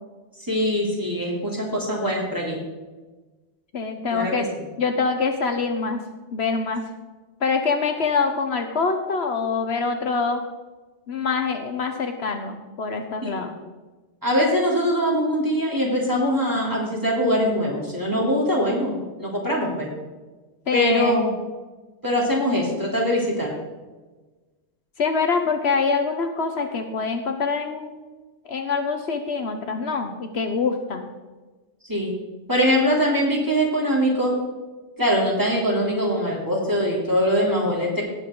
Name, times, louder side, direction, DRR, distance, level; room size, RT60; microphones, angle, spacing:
voice 1, 0.4-2.6 4.1-4.3 13.2-13.5 14.2-19.9 20.7-21.3 22.0-23.5 31.9-32.1 32.5-34.4 35.0-38.0, equal, 15° right, -4 dB, 3.2 m, -22 dB
voice 2, 3.7-4.5 4.8-6.0 6.3-6.8 7.4-10.4 11.1-13.5 20.7-21.2 25.0-28.0 28.5-31.1, left 4 dB, 65° left, 5 dB, 1.2 m, -25 dB
18.5 x 7.6 x 3.8 m, 1.3 s
omnidirectional pair, 1.2 m